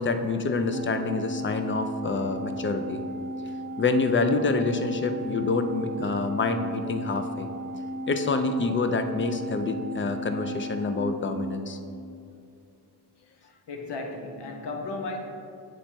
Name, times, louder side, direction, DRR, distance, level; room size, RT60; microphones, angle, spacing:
voice 1, 0.0-3.0 3.8-7.5 8.1-11.8, left 3 dB, 30° left, 8 dB, 0.4 m, -27 dB
Organ, 0.7-11.9, equal, 20° right, 0.6 m, -35 dB
voice 2, 13.4-15.2, left 3 dB, 70° left, 3 dB, 1.0 m, -35 dB
8.8 x 3.3 x 4.3 m, 2.6 s
wide cardioid pair, 115°, 42 cm